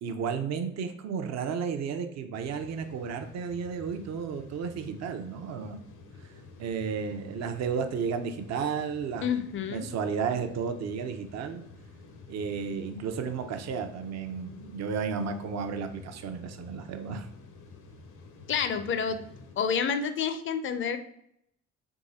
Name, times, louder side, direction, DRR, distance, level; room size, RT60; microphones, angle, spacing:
voice 1, 0.0-5.8 6.6-9.3 9.7-11.6 12.3-17.3, right 6 dB, 60° right, 6 dB, 0.6 m, -33 dB
sound 1, 2.3-19.5, left 3 dB, 80° left, 0.9 m, -50 dB
voice 2, 9.2-9.9 18.5-19.2 19.6-21.0, left 7 dB, 40° left, 10 dB, 0.5 m, -29 dB
3.7 x 3.0 x 4.1 m, 0.75 s
cardioid pair, 90°, 30 cm